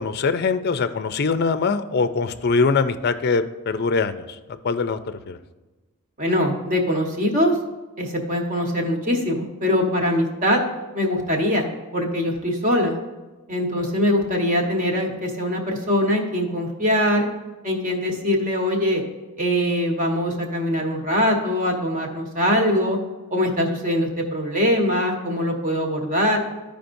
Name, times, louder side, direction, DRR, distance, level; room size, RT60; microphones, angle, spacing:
voice 1, 0.0-4.3 4.6-5.0 5.3-5.4, left 4 dB, 45° left, 11 dB, 0.4 m, -22 dB
voice 2, 6.2-7.6 8.0-10.6 10.9-13.0 13.5-17.3 17.6-19.0 19.4-23.0 23.3-26.5, left 1 dB, 40° right, 1 dB, 1.3 m, -22 dB
14.0 x 5.1 x 2.6 m, 1.2 s
head